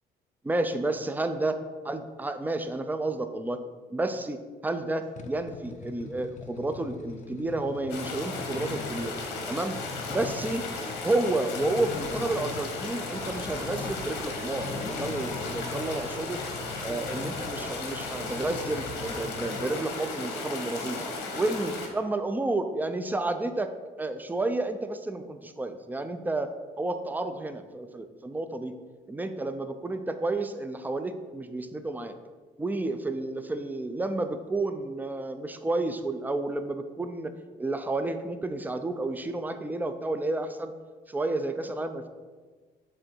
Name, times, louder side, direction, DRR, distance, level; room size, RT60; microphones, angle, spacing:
voice 1, 0.4-1.6 1.8-3.6 3.9-9.2 9.5-10.6 11.0-16.4 16.8-21.0 21.3-23.7 24.0-28.7 29.1-32.2 32.6-40.7 41.1-42.1, right 2 dB, 10° right, 8 dB, 0.5 m, -31 dB
sound 1, 5.2-19.8, left 5 dB, 45° left, 0.6 m, -42 dB
sound 2, 7.9-21.9, left 3 dB, 90° left, 1.3 m, -35 dB
sound 3, 13.1-19.2, right 2 dB, 50° right, 0.9 m, -49 dB
7.7 x 3.8 x 4.5 m, 1.4 s
cardioid pair, 110°, 17 cm